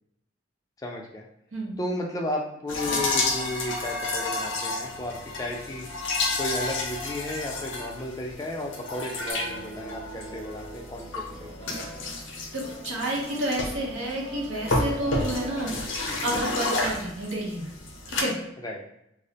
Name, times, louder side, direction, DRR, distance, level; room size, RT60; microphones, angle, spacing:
voice 1, 0.8-1.3 1.8-5.9 6.4-11.5 18.6-18.8, left 1 dB, 20° left, 0 dB, 0.3 m, -34 dB
sound 1, 2.7-18.2, left 2 dB, 75° left, 0.5 m, -31 dB
sound 2, 9.3-16.4, right 1 dB, 50° right, 0.7 m, -46 dB
voice 2, 12.5-17.7 18.1-18.3, right 1 dB, 90° right, -2 dB, 0.7 m, -30 dB
2.4 x 2.0 x 2.7 m, 0.81 s
head